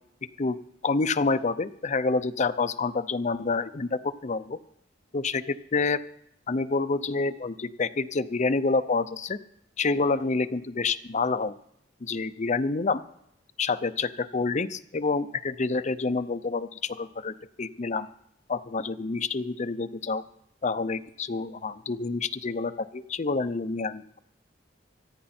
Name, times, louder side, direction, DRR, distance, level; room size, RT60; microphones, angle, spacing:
voice 1, 0.8-4.6 5.1-6.0 6.5-9.4 9.8-11.5 12.0-13.0 13.6-18.1 18.5-20.2 20.6-24.2, left 4 dB, 40° left, 10 dB, 0.6 m, -28 dB
25.5 x 8.7 x 4.3 m, 0.74 s
head